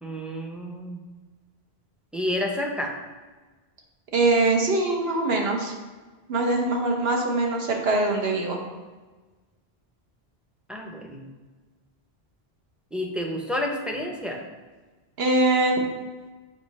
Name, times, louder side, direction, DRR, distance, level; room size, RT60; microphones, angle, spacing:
voice 1, 0.0-1.0 2.1-2.9 10.7-11.2 12.9-14.4, left 1 dB, ahead, 1 dB, 0.6 m, -30 dB
voice 2, 4.1-5.7 6.3-8.6 15.2-15.8, right 2 dB, 75° right, 1 dB, 1.2 m, -22 dB
7.4 x 2.9 x 5.3 m, 1.3 s
omnidirectional pair, 1.1 m